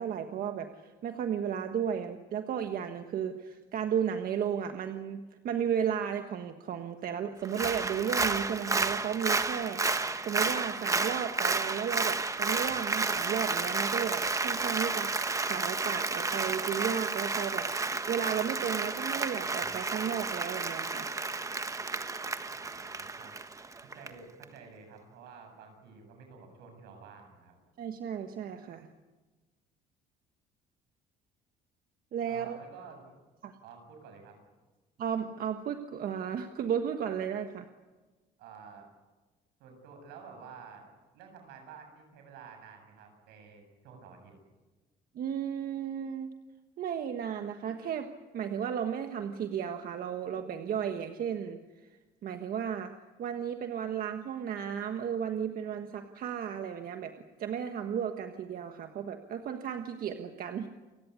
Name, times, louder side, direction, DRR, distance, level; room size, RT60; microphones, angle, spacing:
voice 1, 0.0-17.7 18.1-21.1 27.8-28.9 32.1-32.6 33.4-33.5 35.0-37.6 45.1-46.3 46.8-48.1 48.3-51.6 52.2-52.9 53.2-57.1 57.4-60.7, right 8 dB, 60° right, 6 dB, 1.5 m, -34 dB
Applause, 7.4-24.1 24.4-24.5, right 3 dB, 20° right, 1.3 m, -31 dB
voice 2, 22.5-23.3 23.8-27.6 32.3-33.1 33.6-34.4 38.4-38.9 39.6-44.3, right 5 dB, 90° right, 5 dB, 7.7 m, -51 dB
29.0 x 16.5 x 9.7 m, 1.2 s
cardioid pair, 110°, 17 cm